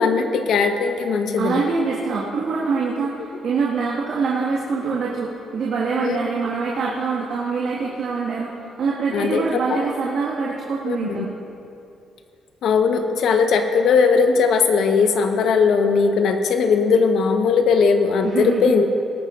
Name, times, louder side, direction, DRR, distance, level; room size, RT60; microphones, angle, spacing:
voice 1, 0.0-1.6 6.0-6.3 9.1-9.4 9.7-9.8 10.9-11.3 12.6-18.9, left 5 dB, 75° left, 6 dB, 1.1 m, -19 dB
voice 2, 1.4-11.3 18.2-18.7, right 4 dB, 70° right, -5 dB, 1.8 m, -24 dB
18.5 x 14.0 x 2.6 m, 2.6 s
cardioid pair, 90°, 0 cm